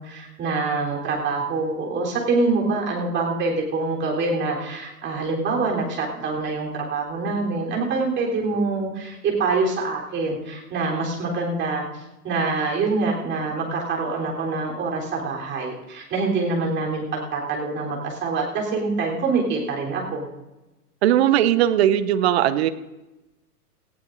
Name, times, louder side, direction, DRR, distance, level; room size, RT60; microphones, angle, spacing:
voice 1, 0.0-20.3, right 3 dB, 25° right, -2 dB, 3.7 m, -25 dB
voice 2, 21.0-22.7, right 11 dB, 40° right, 13 dB, 0.9 m, -18 dB
18.5 x 15.5 x 2.6 m, 1.0 s
figure-of-eight pair, 110°, 47 cm